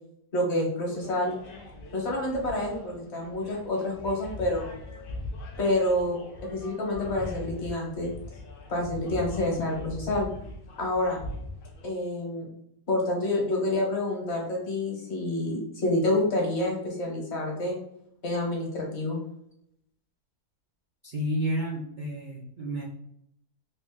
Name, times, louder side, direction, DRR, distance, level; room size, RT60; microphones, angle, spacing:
voice 1, 0.3-1.3 1.9-4.7 5.6-6.2 6.5-8.1 8.7-10.3 10.8-11.2 11.8-12.5 12.9-17.8 18.2-19.2, left 1 dB, 45° left, -1 dB, 1.3 m, -28 dB
sound 1, 0.9-11.9, left 2 dB, 70° left, 0.5 m, -41 dB
voice 2, 21.0-22.8, equal, 65° right, -4 dB, 0.4 m, -31 dB
3.2 x 2.6 x 3.6 m, 0.73 s
omnidirectional pair, 1.7 m